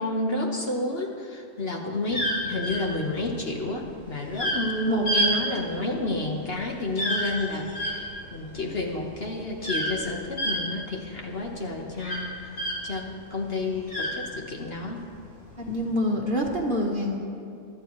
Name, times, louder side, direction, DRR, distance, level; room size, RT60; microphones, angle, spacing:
voice 1, 0.0-12.5 12.8-15.0, left 2 dB, 45° left, 0 dB, 1.5 m, -30 dB
sound 1, 2.1-13.1 13.4-14.8 15.5-15.8, equal, 85° left, 3.7 m, -29 dB
voice 2, 15.7-17.2, left 1 dB, 40° right, -1 dB, 1.6 m, -26 dB
23.5 x 12.5 x 3.2 m, 2.4 s
omnidirectional pair, 1.4 m